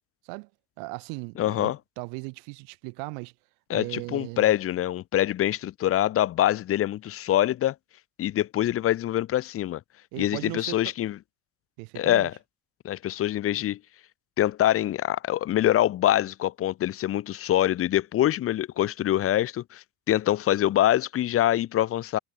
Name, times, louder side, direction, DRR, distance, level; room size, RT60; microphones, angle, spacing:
voice 1, 0.8-3.3 3.7-4.5 10.1-10.9 11.8-12.3, right 40 dB or more, 80° right, 3.1 m, -37 dB
voice 2, 1.4-1.8 3.7-7.7 8.2-9.8 10.2-11.2 11.9-12.3 12.8-13.8 14.4-22.2, left 12 dB, 40° left, 1.4 m, -24 dB
cardioid pair, 140°, 34 cm